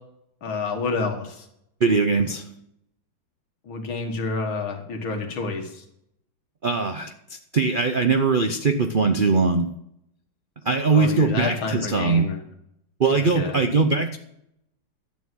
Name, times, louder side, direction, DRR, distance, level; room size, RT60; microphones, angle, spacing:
voice 1, 0.4-1.5 3.7-5.8 10.8-12.4 13.3-13.6, left 4 dB, 90° left, 3 dB, 2.4 m, -29 dB
voice 2, 1.8-2.4 6.6-9.7 10.6-12.3 13.0-14.2, right 4 dB, 80° right, 7 dB, 0.4 m, -21 dB
12.0 x 9.7 x 6.3 m, 0.77 s
omnidirectional pair, 2.1 m